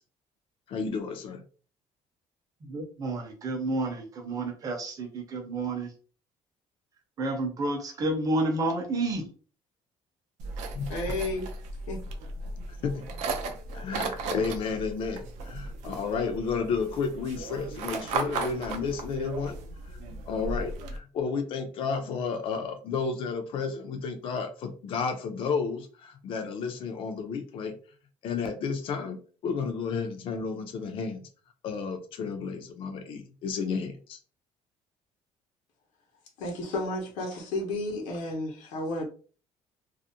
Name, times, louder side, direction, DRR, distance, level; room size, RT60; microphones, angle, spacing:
voice 1, 0.7-1.4 10.7-10.9 12.7-13.0 13.7-19.6 20.3-27.8 28.2-31.3 31.6-34.2, left 5 dB, 45° left, 5 dB, 0.4 m, -32 dB
voice 2, 2.6-5.9 7.2-9.3, right 2 dB, 30° right, 3 dB, 0.6 m, -30 dB
sound 1, 10.4-21.0, right 3 dB, 80° right, 0.5 m, -36 dB
voice 3, 10.9-11.5 11.9-12.0 36.4-39.1, left 2 dB, 85° left, 1 dB, 0.8 m, -32 dB
2.4 x 2.0 x 2.7 m, 0.39 s
cardioid pair, 170°, 12 cm